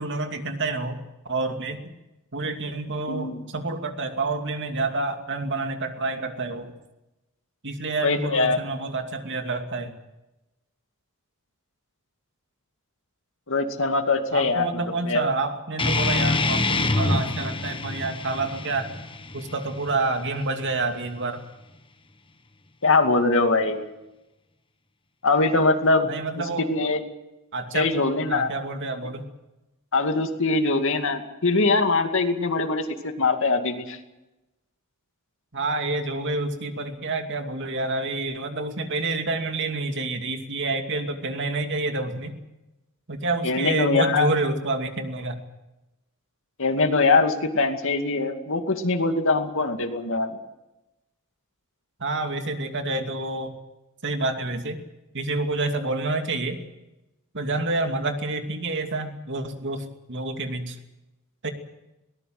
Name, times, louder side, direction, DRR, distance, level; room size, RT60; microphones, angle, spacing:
voice 1, 0.0-1.9 2.3-6.7 7.6-10.0 14.3-18.9 19.3-21.5 26.0-26.7 27.5-27.9 28.3-29.3 35.5-42.4 43.1-45.4 52.0-53.5 54.0-54.8 55.1-56.6 57.3-60.8 61.4-61.5, right 3 dB, 55° right, 5 dB, 2.7 m, -28 dB
voice 2, 3.1-3.4 8.0-8.6 13.5-14.6 15.1-15.2 22.8-23.9 25.2-26.1 26.6-27.0 27.7-28.5 29.9-34.0 43.4-44.3 46.6-50.4, left 3 dB, 65° left, 6 dB, 2.4 m, -22 dB
sound 1, 15.8-20.8, left 2 dB, 25° left, 1.2 m, -26 dB
22.0 x 19.0 x 7.8 m, 0.98 s
head